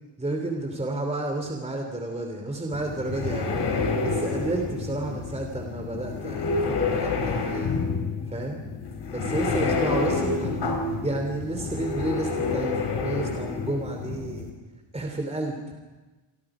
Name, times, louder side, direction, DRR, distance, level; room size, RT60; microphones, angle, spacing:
voice 1, 0.2-3.5 4.0-7.8 8.3-8.6 9.1-10.6 11.0-14.5 14.9-15.6, right 2 dB, 15° right, 3 dB, 3.1 m, -31 dB
sound 1, 2.7-14.5, left 4 dB, 55° left, 4.5 m, -28 dB
29.0 x 24.5 x 5.0 m, 1.2 s
cardioid pair, 125°, 48 cm